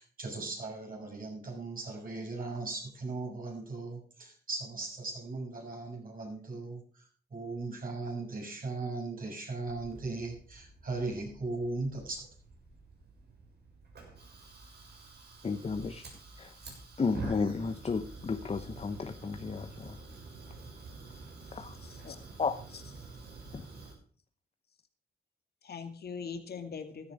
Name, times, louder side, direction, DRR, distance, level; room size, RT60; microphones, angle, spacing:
voice 1, 0.0-12.3, right 3 dB, 55° right, 1 dB, 6.7 m, -38 dB
Fire, 9.7-23.9, right 3 dB, 70° right, 6.6 m, -48 dB
voice 2, 15.4-16.0 16.4-16.5 17.0-20.0 21.5-21.7 22.4-22.6 23.5-23.6, left 4 dB, 35° left, 9 dB, 0.9 m, -33 dB
voice 3, 21.8-22.2 22.7-22.8 25.6-27.1, left 6 dB, 65° left, 6 dB, 2.2 m, -41 dB
15.5 x 13.5 x 3.5 m, 0.43 s
cardioid pair, 85°, 17 cm